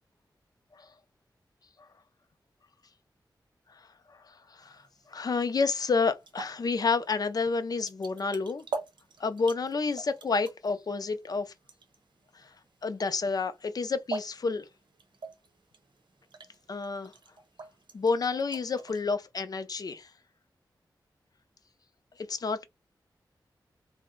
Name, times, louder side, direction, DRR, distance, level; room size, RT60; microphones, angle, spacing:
sound 1, 4.6-19.0, right 3 dB, 80° right, 0.7 m, -45 dB
voice 1, 5.1-8.6 9.2-11.5 12.8-14.7 16.7-17.1 17.9-20.1 22.3-22.6, left 4 dB, 55° left, 0.5 m, -29 dB
2.6 x 2.1 x 3.7 m
wide cardioid pair, 100°, 8 cm